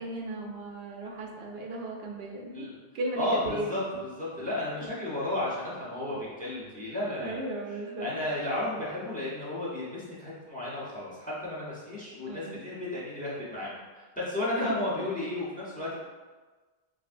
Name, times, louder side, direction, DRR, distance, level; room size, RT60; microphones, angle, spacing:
voice 1, 0.0-2.7 2.9-3.8 7.2-8.1 12.3-12.6 14.5-14.7, right 2 dB, 80° right, 0 dB, 0.8 m, -35 dB
voice 2, 3.2-16.0, left 1 dB, 10° left, -7 dB, 0.8 m, -33 dB
5.7 x 2.0 x 2.5 m, 1.3 s
omnidirectional pair, 1.0 m